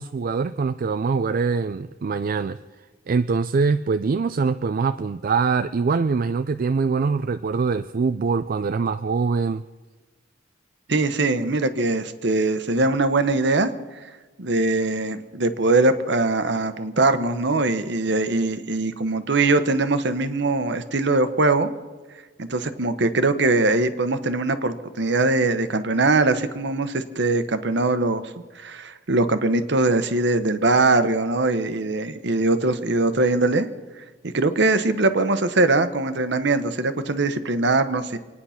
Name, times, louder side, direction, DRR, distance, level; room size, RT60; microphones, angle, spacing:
voice 1, 0.0-2.6 3.1-9.6, right 4 dB, 50° right, 10 dB, 0.4 m, -23 dB
voice 2, 10.9-13.7 14.4-21.7 22.4-28.3 28.6-33.7 34.3-38.2, right 2 dB, 65° right, 11 dB, 1.0 m, -21 dB
26.0 x 9.7 x 5.8 m, 1.3 s
head